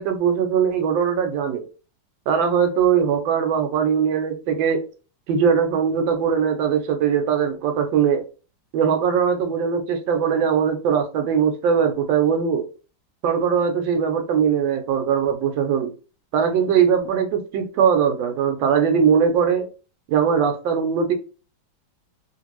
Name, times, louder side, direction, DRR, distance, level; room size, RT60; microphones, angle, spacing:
voice 1, 0.0-1.7 2.3-4.8 5.3-8.2 8.7-12.7 13.2-15.9 16.3-19.7 20.1-21.1, right 7 dB, 80° right, 6 dB, 1.3 m, -20 dB
3.1 x 2.5 x 3.0 m, 0.36 s
omnidirectional pair, 2.1 m